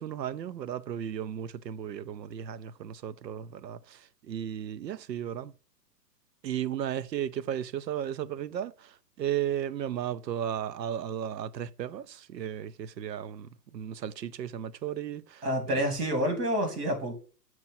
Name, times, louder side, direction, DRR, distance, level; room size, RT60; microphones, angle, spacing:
voice 1, 0.0-5.5 6.4-15.8, right 10 dB, 90° right, 0.6 m, -35 dB
voice 2, 15.4-17.1, equal, 65° right, 2.9 m, -28 dB
7.4 x 3.1 x 5.5 m
hypercardioid pair, 120°, 48 cm